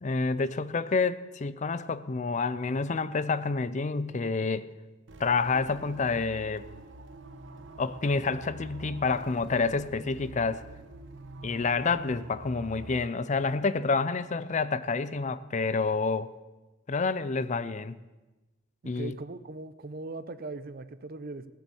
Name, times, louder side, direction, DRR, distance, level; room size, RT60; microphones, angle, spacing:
voice 1, 0.0-4.7 5.2-6.6 7.8-10.6 11.4-16.3 16.9-18.0 18.8-19.2, left 4 dB, 40° left, 0.5 m, -28 dB
sound 1, 5.1-13.1, right 2 dB, 75° right, 1.1 m, -46 dB
voice 2, 18.9-21.5, right 2 dB, 50° right, 0.7 m, -39 dB
17.0 x 7.8 x 7.1 m
head